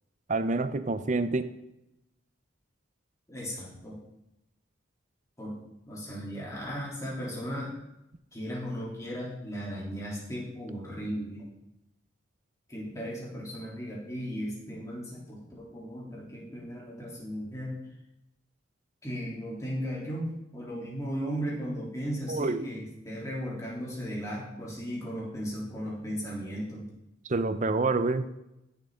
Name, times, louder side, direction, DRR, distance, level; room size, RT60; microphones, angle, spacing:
voice 1, 0.3-1.5 22.3-22.6 27.3-28.3, right 3 dB, 40° right, 12 dB, 0.6 m, -27 dB
voice 2, 3.3-4.0 5.4-5.5 5.8-7.8 8.3-11.5 12.7-17.8 19.0-26.9, equal, 15° left, -5 dB, 3.3 m, -36 dB
15.5 x 7.4 x 3.8 m, 0.89 s
head